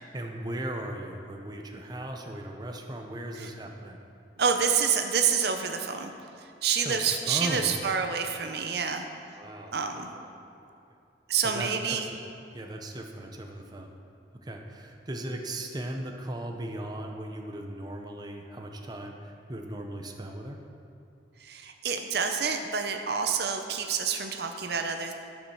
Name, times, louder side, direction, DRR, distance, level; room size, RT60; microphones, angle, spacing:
voice 1, 0.1-4.0 6.8-7.7 9.4-9.8 10.1-10.3 11.4-12.2 12.5-13.9 14.4-20.6, right 1 dB, 20° right, 2 dB, 0.7 m, -37 dB
voice 2, 4.4-6.1 6.4-9.1 9.7-10.1 11.3-12.1 21.4-25.1, right 6 dB, 60° right, 5 dB, 0.6 m, -28 dB
12.0 x 5.3 x 6.3 m, 2.6 s
head